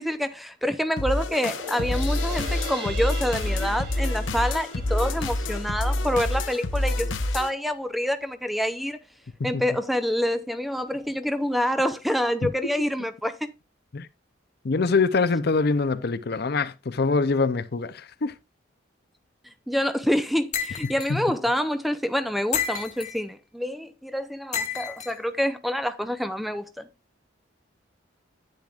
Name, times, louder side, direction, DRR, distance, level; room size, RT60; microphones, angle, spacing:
voice 1, 0.0-9.0 9.4-13.4 19.7-26.9, equal, ahead, 0.6 m, -27 dB
sound 1, 1.0-7.5, left 1 dB, 70° left, 0.9 m, -27 dB
sound 2, 1.1-7.7 8.1-8.2, left 1 dB, 60° right, 4.1 m, -41 dB
voice 2, 14.6-18.3 21.1-21.2, left 4 dB, 50° left, 0.6 m, -24 dB
sound 3, 20.5-21.1 22.5-23.2 24.5-25.1, left 7 dB, 35° left, 1.3 m, -30 dB
10.5 x 9.2 x 2.4 m
head